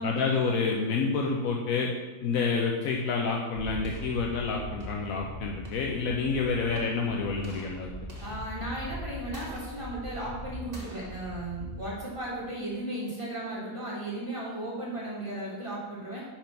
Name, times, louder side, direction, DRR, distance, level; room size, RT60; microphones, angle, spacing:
voice 1, 0.0-1.9 2.2-7.9, left 4 dB, 80° left, 0 dB, 1.2 m, -28 dB
sound 1, 3.6-12.7, right 1 dB, 40° right, 1.7 m, -41 dB
voice 2, 8.2-16.2, right 1 dB, 20° right, -7 dB, 1.9 m, -35 dB
5.8 x 5.3 x 5.8 m, 1.2 s
omnidirectional pair, 1.4 m